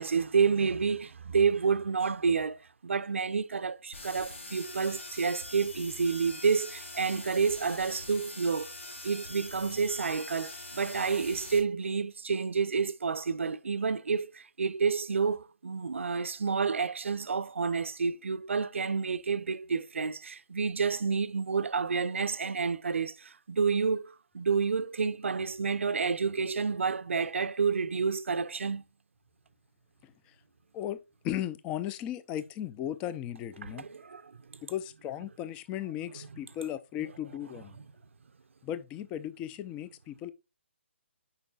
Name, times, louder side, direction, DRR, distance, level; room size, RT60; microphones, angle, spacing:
voice 1, 0.0-8.7 9.0-28.8 33.6-34.4, right 5 dB, 75° right, 0.5 m, -29 dB
sound 1, 3.9-11.6, left 2 dB, 80° left, 3.1 m, -44 dB
voice 2, 31.2-33.8 34.6-37.8 38.6-40.3, left 11 dB, 15° left, 0.4 m, -36 dB
8.0 x 5.3 x 2.3 m
hypercardioid pair, 150°, 7 cm